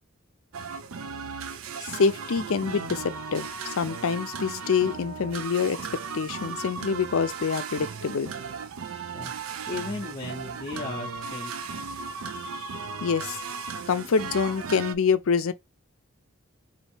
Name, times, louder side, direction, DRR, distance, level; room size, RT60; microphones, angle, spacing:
sound 1, 0.5-15.0, right 5 dB, 80° right, 0.4 m, -36 dB
voice 1, 1.8-5.8 6.1-8.3 12.3-13.4 13.9-15.5, left 5 dB, 80° left, 0.5 m, -26 dB
voice 2, 9.7-11.5, left 3 dB, 25° left, 0.6 m, -35 dB
4.1 x 2.6 x 3.2 m
head